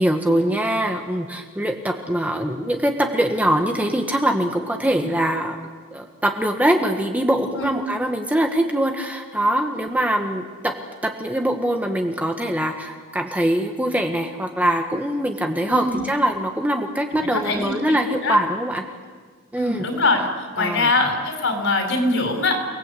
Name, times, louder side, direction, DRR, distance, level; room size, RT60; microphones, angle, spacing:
voice 1, 0.0-5.6 5.9-18.8 19.5-19.9 20.6-20.9, right 1 dB, 5° right, 3 dB, 1.5 m, -23 dB
voice 2, 15.7-16.1 17.2-17.7 18.2-18.4 19.6-22.6, left 2 dB, 60° left, 3 dB, 5.6 m, -22 dB
29.5 x 20.0 x 8.4 m, 1.5 s
head